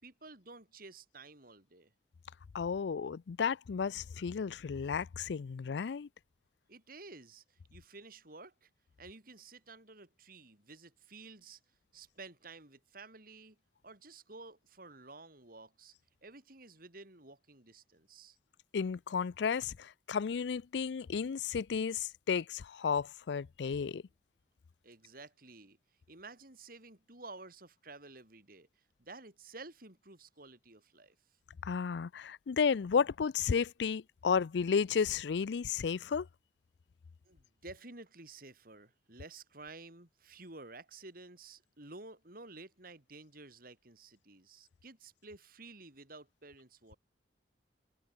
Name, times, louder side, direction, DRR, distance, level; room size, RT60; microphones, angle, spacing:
voice 1, 0.0-1.9 6.7-8.7 9.0-11.6 11.9-13.6 13.8-15.9 16.2-18.4 24.8-25.8 26.1-31.2 37.3-47.0, right 3 dB, 55° right, 5.1 m, -52 dB
voice 2, 2.5-6.1 18.7-24.0 31.6-36.3, left 6 dB, 75° left, 0.4 m, -33 dB
head